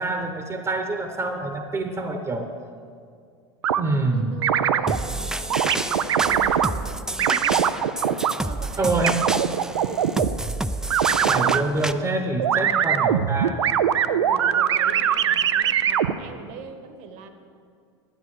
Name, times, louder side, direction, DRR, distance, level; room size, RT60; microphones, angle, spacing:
voice 1, 0.0-2.5 3.8-4.5 8.8-9.2 11.2-13.6, right 2 dB, 20° right, 5 dB, 0.9 m, -26 dB
sound 1, 3.6-3.8 4.4-5.0 5.5-6.7 7.2-8.3 9.0-10.3 10.9-11.6 12.4-16.1, right 9 dB, 90° right, 0.4 m, -21 dB
voice 2, 3.8-10.2 11.4-11.5 14.0-17.3, right 5 dB, 55° right, 7 dB, 1.3 m, -42 dB
sound 2, 4.9-11.9, right 1 dB, 5° right, 0.4 m, -30 dB
11.0 x 10.0 x 4.9 m, 2.2 s
hypercardioid pair, 85°, 14 cm